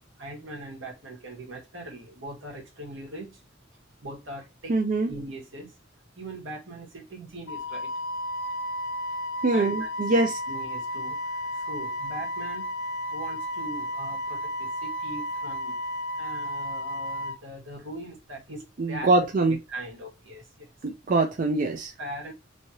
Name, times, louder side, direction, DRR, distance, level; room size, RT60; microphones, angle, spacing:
voice 1, 0.2-3.4 4.0-5.7 6.2-7.9 9.5-10.2 10.5-12.7 13.1-15.8 16.2-20.7 22.0-22.3, right 1 dB, 85° right, 1.4 m, -40 dB
voice 2, 4.7-5.1 9.4-10.3 18.8-19.6 20.8-21.9, right 2 dB, 45° right, 0.5 m, -23 dB
Wind instrument woodwind instrument, 7.5-17.4, left 1 dB, 65° left, 0.4 m, -33 dB
3.1 x 2.7 x 2.8 m
head